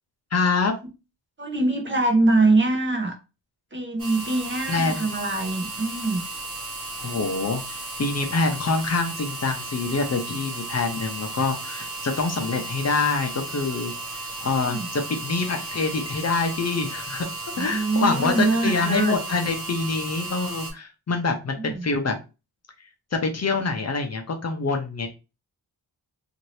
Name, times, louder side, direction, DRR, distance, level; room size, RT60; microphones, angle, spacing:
voice 1, 0.3-0.7 4.7-5.1 7.0-13.9 14.4-17.3 17.6-22.2 23.1-25.1, left 4 dB, 40° left, 0.6 m, -25 dB
voice 2, 1.4-3.2 3.7-6.2 14.6-14.9 17.6-19.2 21.6-21.9, right 2 dB, 30° right, 0.7 m, -23 dB
sound 1, 4.0-20.7, right 2 dB, 55° right, 1.5 m, -35 dB
2.7 x 2.6 x 3.1 m
wide cardioid pair, 130°, 39 cm